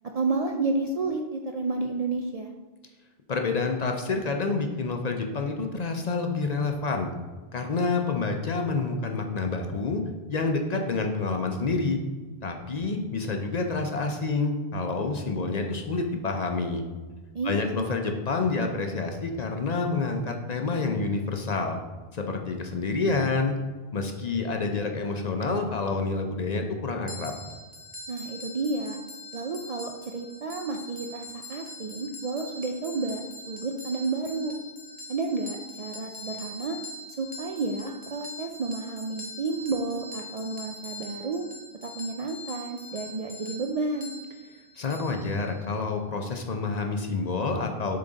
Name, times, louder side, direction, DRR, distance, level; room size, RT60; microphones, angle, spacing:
voice 1, 0.1-2.5 17.3-17.9 28.1-29.0 29.3-33.2 33.5-34.5 35.1-36.8 37.2-41.5 41.8-44.1, right 3 dB, 55° right, 3 dB, 0.4 m, -31 dB
voice 2, 3.3-7.1 7.5-10.0 10.3-12.0 12.4-16.8 17.4-21.8 22.1-23.5 23.9-27.3 44.8-48.0, left 3 dB, 50° left, 3 dB, 0.6 m, -28 dB
sound 1, 27.1-45.9, left 1 dB, 10° right, 0.8 m, -43 dB
7.2 x 3.8 x 3.9 m, 1.3 s
omnidirectional pair, 1.0 m